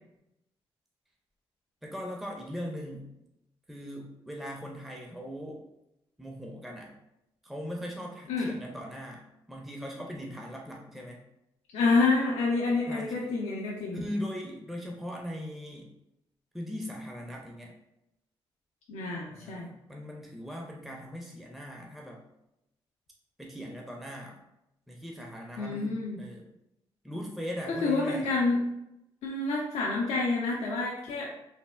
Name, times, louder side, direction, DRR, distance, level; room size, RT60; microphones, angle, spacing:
voice 1, 1.8-3.1 3.7-5.6 6.2-6.9 7.4-11.2 12.9-13.3 13.9-15.9 16.5-17.7 19.3-22.2 23.4-24.4 24.9-26.4 27.0-28.3, equal, ahead, -1 dB, 0.5 m, -40 dB
voice 2, 11.7-14.0 18.9-19.7 25.6-26.2 27.7-28.6 29.2-31.3, left 3 dB, 80° left, -4 dB, 0.4 m, -28 dB
3.2 x 2.0 x 2.2 m, 0.86 s
supercardioid pair, 50°, 11 cm